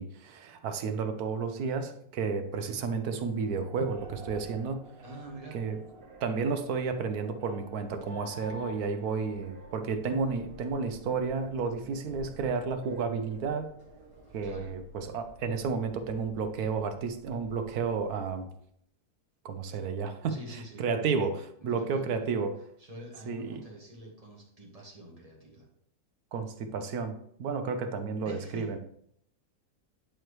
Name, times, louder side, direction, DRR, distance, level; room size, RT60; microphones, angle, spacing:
voice 1, 0.0-4.8 5.5-5.8 6.2-13.7 14.3-18.5 19.4-20.3 20.8-22.5 23.3-23.6 26.3-27.1 27.4-28.8, right 5 dB, 70° right, 7 dB, 1.2 m, -32 dB
sound 1, 3.2-14.5, right 1 dB, 40° right, 1.7 m, -50 dB
voice 2, 5.0-5.6 14.4-14.7 20.3-20.9 21.6-22.4 22.8-25.7 28.2-28.7, right 1 dB, 25° right, -2 dB, 1.7 m, -46 dB
sound 2, 9.1-18.6, left 1 dB, 65° left, 2.6 m, -54 dB
10.0 x 4.5 x 3.2 m, 0.70 s
omnidirectional pair, 1.7 m